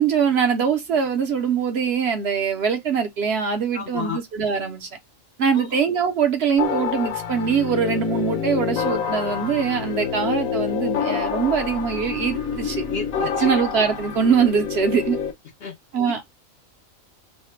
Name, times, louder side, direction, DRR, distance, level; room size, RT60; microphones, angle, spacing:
voice 1, 0.0-4.9 5.4-12.8 13.4-15.2 15.9-16.2, right 6 dB, 60° right, 0.8 m, -22 dB
voice 2, 3.7-4.2 5.5-5.7 12.9-13.5 15.6-15.8, left 5 dB, 60° left, 0.7 m, -31 dB
sound 1, 6.6-15.3, left 7 dB, 85° left, 1.2 m, -27 dB
3.2 x 2.1 x 4.2 m
omnidirectional pair, 1.4 m